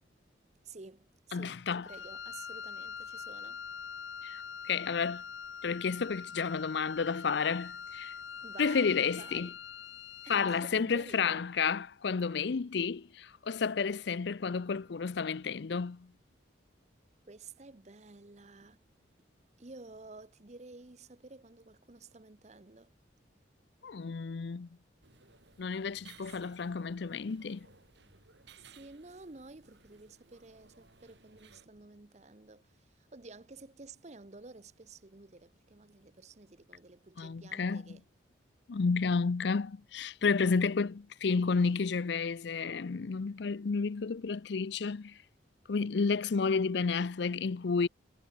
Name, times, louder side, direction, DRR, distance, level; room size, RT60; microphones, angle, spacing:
voice 1, 0.6-3.6 8.4-9.5 10.3-11.4 17.3-18.8 19.6-22.9 26.3-26.4 28.6-38.0, right 3 dB, 35° right, 0.8 m, -52 dB
voice 2, 1.3-1.9 4.2-5.2 5.6-8.1 8.6-9.5 10.3-16.1 23.8-24.7 25.6-27.7 37.2-38.0 38.7-45.2 45.7-47.9, left 5 dB, 65° left, 0.5 m, -31 dB
Wind instrument woodwind instrument, 1.8-10.7, left 7 dB, 80° left, 1.2 m, -44 dB
sound 1, 25.0-31.7, right 5 dB, 65° right, 4.0 m, -60 dB
head